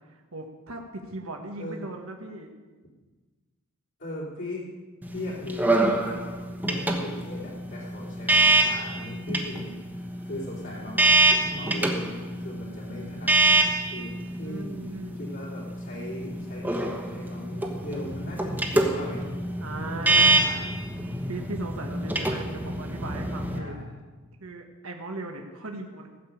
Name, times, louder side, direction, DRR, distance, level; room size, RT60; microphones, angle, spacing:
voice 1, 0.0-2.5 14.4-15.2 19.6-20.3 21.3-23.8 24.4-26.1, right 2 dB, 80° right, 3 dB, 1.4 m, -38 dB
voice 2, 4.0-4.6 5.1-6.4 6.7-19.3 19.9-20.8 23.5-23.9, left 1 dB, 60° left, -8 dB, 3.2 m, -39 dB
sound 1, 5.0-23.6, right 2 dB, 10° right, 1.3 m, -26 dB
16.0 x 7.0 x 8.6 m, 1.3 s
head